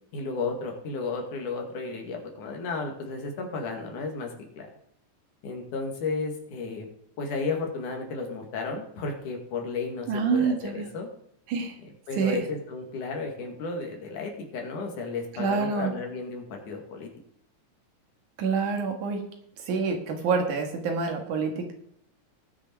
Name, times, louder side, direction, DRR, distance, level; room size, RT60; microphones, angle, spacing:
voice 1, 0.1-4.7 5.4-6.9 7.2-11.1 11.8-17.1, left 4 dB, 80° left, 2 dB, 3.6 m, -33 dB
voice 2, 10.1-10.9 11.5-11.7 12.2-12.4 15.4-15.9 18.4-19.2 19.7-21.7, right 5 dB, 75° right, 4 dB, 3.2 m, -27 dB
19.0 x 6.5 x 4.6 m, 0.73 s
omnidirectional pair, 3.5 m